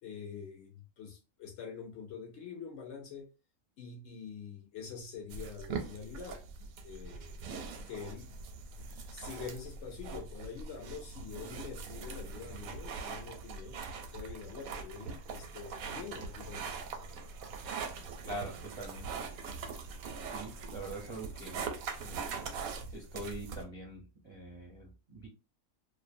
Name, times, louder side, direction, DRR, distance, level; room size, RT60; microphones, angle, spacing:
voice 1, 0.0-3.3 3.8-7.4 7.9-8.3 9.1-13.8 14.1-16.8, left 6 dB, 65° left, 0.7 m, -45 dB
sound 1, 5.3-23.6, right 5 dB, 85° right, 1.0 m, -42 dB
voice 2, 18.2-19.3 20.2-21.6 22.0-22.2 22.9-25.3, right 2 dB, 40° right, 0.4 m, -44 dB
2.5 x 2.1 x 2.5 m
omnidirectional pair, 1.4 m